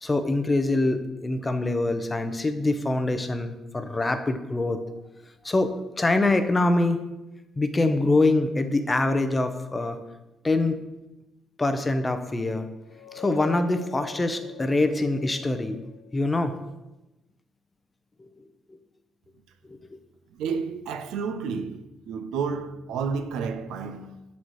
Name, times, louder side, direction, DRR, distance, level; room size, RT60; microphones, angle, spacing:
voice 1, 0.0-4.8 5.4-7.0 7.6-10.0 10.4-10.8 11.6-12.7 13.1-15.8 16.1-16.6 18.2-18.3 18.7-18.8 19.7-20.0, left 2 dB, 20° left, 0.6 m, -24 dB
sound 1, 12.8-16.3, left 11 dB, 80° left, 1.0 m, -44 dB
voice 2, 20.3-24.2, right 5 dB, 90° right, 0.4 m, -31 dB
6.3 x 4.1 x 4.6 m
cardioid pair, 90°, 0 cm